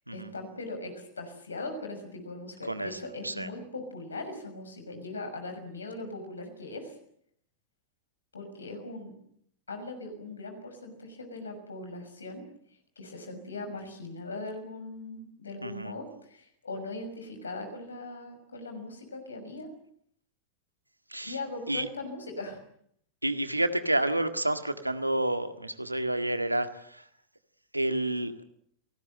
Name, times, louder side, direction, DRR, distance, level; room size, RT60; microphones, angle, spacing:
voice 1, 0.1-7.0 8.3-9.1 9.7-12.4 13.0-19.7 21.2-22.6, left 2 dB, 75° left, 6 dB, 6.3 m, -40 dB
voice 2, 2.7-3.0 3.2-3.5 15.6-15.9 21.1-21.4 21.7-21.9 23.2-27.0 27.7-28.3, right 1 dB, 85° right, 9 dB, 1.8 m, -29 dB
29.5 x 19.0 x 7.8 m, 0.70 s
figure-of-eight pair, 90°, 0 cm